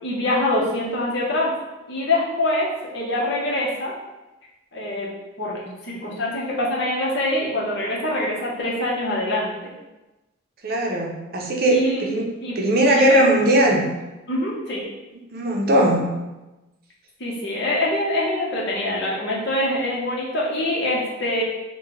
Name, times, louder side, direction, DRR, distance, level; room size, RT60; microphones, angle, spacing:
voice 1, 0.0-1.5 1.9-3.9 4.7-5.1 5.4-9.7 11.7-12.0 12.4-13.3 14.3-14.8 17.2-21.4, left 1 dB, 60° left, -4 dB, 1.0 m, -24 dB
voice 2, 10.6-13.8 15.3-16.0, right 1 dB, 50° right, 0 dB, 0.7 m, -19 dB
5.6 x 2.3 x 3.1 m, 1.0 s
head